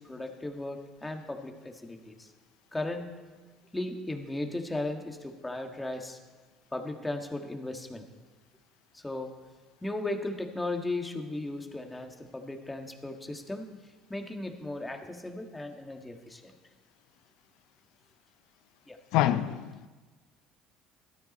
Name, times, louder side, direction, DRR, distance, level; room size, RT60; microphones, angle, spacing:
voice 1, 0.0-2.3 2.7-3.1 3.7-6.2 6.7-8.0 8.9-9.3 9.8-13.7 14.1-16.5 18.9-19.0, left 2 dB, 10° left, 1.7 m, -36 dB
voice 2, 19.1-19.9, left 12 dB, 75° left, 0.5 m, -26 dB
16.5 x 12.5 x 4.3 m
supercardioid pair, 100°, 0 cm